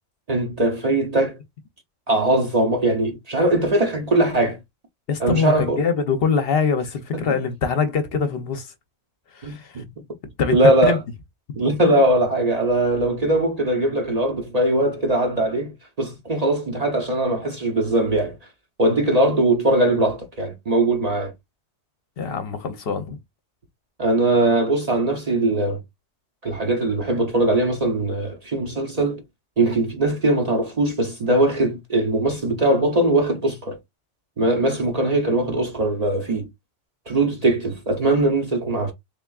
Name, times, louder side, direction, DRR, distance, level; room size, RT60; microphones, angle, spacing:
voice 1, 0.3-1.4 2.1-4.6 5.2-5.8 7.1-7.3 9.4-9.8 10.5-11.0 11.6-18.4 18.8-21.3 24.0-25.8 26.4-29.2 29.6-33.8 34.4-36.5 37.1-38.9, right 2 dB, 40° right, 0.6 m, -21 dB
voice 2, 5.1-8.7 9.3-9.8 10.4-11.0 22.2-23.2, left 5 dB, 60° left, 0.8 m, -23 dB
3.6 x 3.4 x 2.3 m
omnidirectional pair, 1.2 m